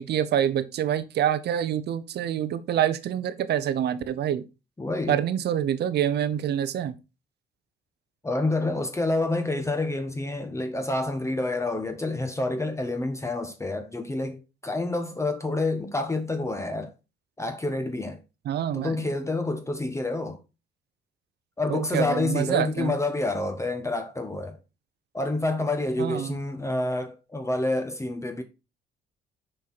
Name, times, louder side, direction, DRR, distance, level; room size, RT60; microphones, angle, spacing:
voice 1, 0.0-4.4 5.1-7.0 18.4-19.0 21.7-22.9 26.0-26.4, right 10 dB, 65° right, 0.7 m, -26 dB
voice 2, 4.8-5.2 8.2-16.9 17.4-18.2 18.7-20.4 21.6-24.6 25.1-28.4, left 2 dB, 15° left, 1.0 m, -28 dB
6.5 x 4.5 x 4.1 m
cardioid pair, 80°, 19 cm